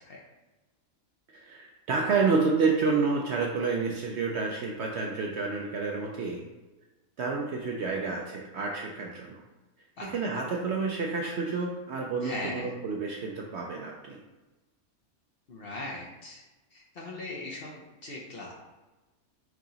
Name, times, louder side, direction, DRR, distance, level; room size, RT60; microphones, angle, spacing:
voice 1, 1.4-6.5 7.2-9.4 10.1-14.2, right 4 dB, 65° right, -1 dB, 0.7 m, -29 dB
voice 2, 10.0-10.4 12.2-12.7 15.5-16.4 16.7-18.5, left 2 dB, 55° left, -3 dB, 0.7 m, -39 dB
4.7 x 2.8 x 3.9 m, 1.2 s
omnidirectional pair, 1.5 m